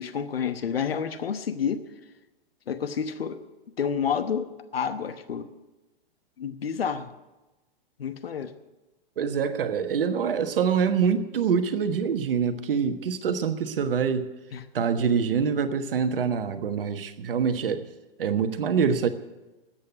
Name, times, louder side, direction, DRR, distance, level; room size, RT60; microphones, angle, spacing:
voice 1, 0.0-1.8 2.7-3.4 3.8-5.5 6.4-7.1 8.0-8.5 14.5-14.6, left 7 dB, 75° left, 11 dB, 1.0 m, -29 dB
voice 2, 9.2-14.3 14.7-17.9 18.2-19.1, right 6 dB, 65° right, 10 dB, 1.3 m, -25 dB
13.5 x 8.8 x 9.4 m, 1.1 s
figure-of-eight pair, 110°, 30 cm